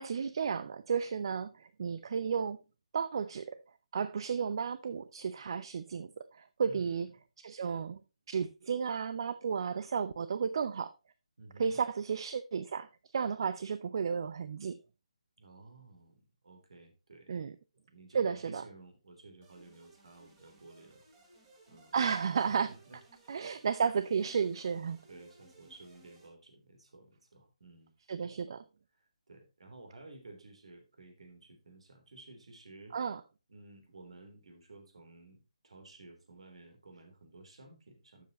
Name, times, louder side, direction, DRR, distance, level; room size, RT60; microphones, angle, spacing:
voice 1, 0.0-2.6 2.9-3.6 3.9-7.1 7.4-8.0 8.3-10.9 11.6-14.8 17.3-17.5 18.1-18.6 21.9-22.7 23.3-25.0 28.1-28.6 32.9-33.2, right 6 dB, 45° right, 0.6 m, -33 dB
voice 2, 6.6-7.0 11.4-11.8 15.4-17.4 17.9-21.0 21.7-21.9 22.2-23.6 25.1-27.9 29.3-33.0 33.5-38.2, right 2 dB, 60° right, 3.4 m, -54 dB
sound 1, 19.4-26.3, right 2 dB, 20° right, 3.5 m, -62 dB
12.0 x 7.6 x 3.0 m
figure-of-eight pair, 145°, 4 cm